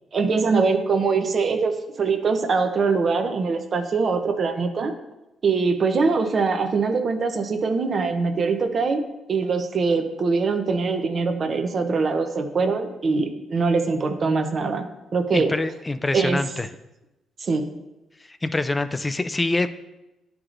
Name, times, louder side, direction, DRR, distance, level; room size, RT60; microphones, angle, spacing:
voice 1, 0.1-4.9 5.4-9.0 9.3-14.9 15.1-15.5 16.1-16.4 17.4-17.6, right 4 dB, 45° right, 6 dB, 0.6 m, -23 dB
voice 2, 15.3-16.7 18.3-19.7, left 2 dB, 20° left, 11 dB, 0.4 m, -25 dB
9.6 x 4.7 x 2.5 m, 0.97 s
cardioid pair, 90°, 0 cm